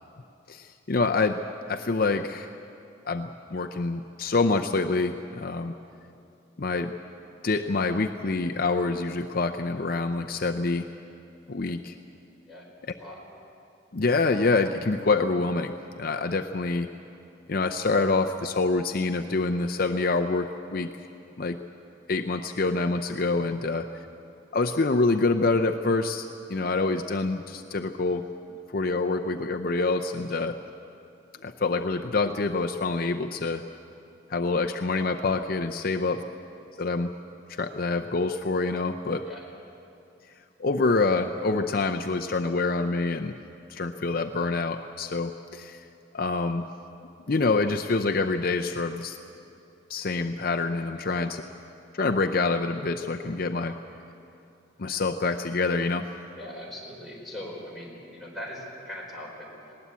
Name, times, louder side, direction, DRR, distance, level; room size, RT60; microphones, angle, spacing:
voice 1, 0.5-1.4 1.7-2.5 3.1-5.7 6.6-6.9 7.4-10.9 11.5-11.9 13.9-15.7 16.0-16.9 17.5-20.9 21.4-21.6 22.1-23.9 24.5-28.2 28.7-30.6 31.4-33.6 34.3-36.2 36.8-37.1 37.5-39.3 40.6-43.3 43.7-45.8 46.1-46.7 47.3-49.2 49.9-51.4 51.9-53.7 54.8-56.1, left 3 dB, 50° left, 5 dB, 0.6 m, -26 dB
voice 2, 12.5-13.2 23.7-23.9 35.8-36.2 39.3-39.4 50.9-51.3 56.3-59.7, left 1 dB, ahead, -4 dB, 4.5 m, -42 dB
19.5 x 18.5 x 8.3 m, 2.7 s
head